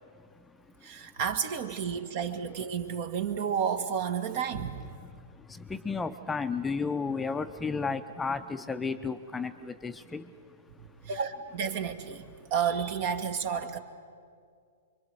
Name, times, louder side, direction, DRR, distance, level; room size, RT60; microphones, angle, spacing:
voice 1, 0.0-1.1 5.0-11.1, left 4 dB, 10° left, 0.7 m, -34 dB
voice 2, 0.8-5.0 11.0-12.2 12.5-13.8, right 7 dB, 50° right, 1.8 m, -31 dB
25.5 x 23.5 x 8.0 m
hypercardioid pair, 120°, 0 cm